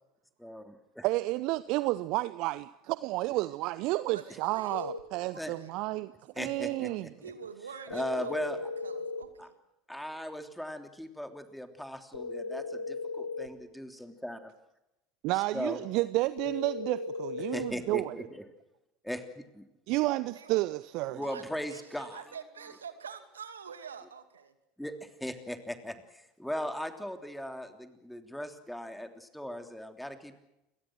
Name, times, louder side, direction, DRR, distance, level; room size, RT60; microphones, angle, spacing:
voice 1, 0.4-1.0 5.4-5.5 6.3-7.3 7.9-8.6 9.4-9.5 9.9-14.5 15.3-15.8 17.4-18.4 19.0-19.7 21.1-22.2 24.8-30.4, equal, 5° left, 7 dB, 3.2 m, -38 dB
voice 2, 1.0-7.1 15.2-18.1 19.9-21.2, right 19 dB, 55° right, 15 dB, 0.8 m, -31 dB
voice 3, 4.1-4.9 5.3-6.0 6.3-6.4 7.2-9.5 20.3-20.6 21.2-24.5, right 6 dB, 80° right, 9 dB, 2.3 m, -47 dB
sound 1, 4.7-5.1 7.9-9.3 12.1-13.5 16.4-17.8, left 4 dB, 85° left, 1.8 m, -37 dB
29.5 x 23.5 x 6.2 m, 0.91 s
figure-of-eight pair, 75°, 0 cm